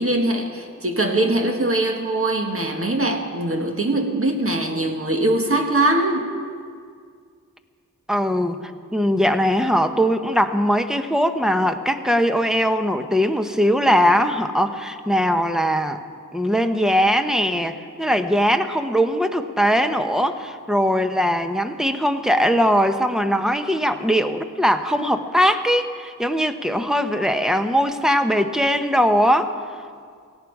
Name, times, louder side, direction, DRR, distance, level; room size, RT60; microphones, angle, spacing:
voice 1, 0.0-6.3, right 1 dB, 45° right, 3 dB, 1.8 m, -22 dB
voice 2, 8.1-8.6 8.9-16.0 16.3-29.5, equal, ahead, 7 dB, 0.9 m, -20 dB
17.5 x 17.0 x 4.8 m, 2.1 s
wide cardioid pair, 65°, 31 cm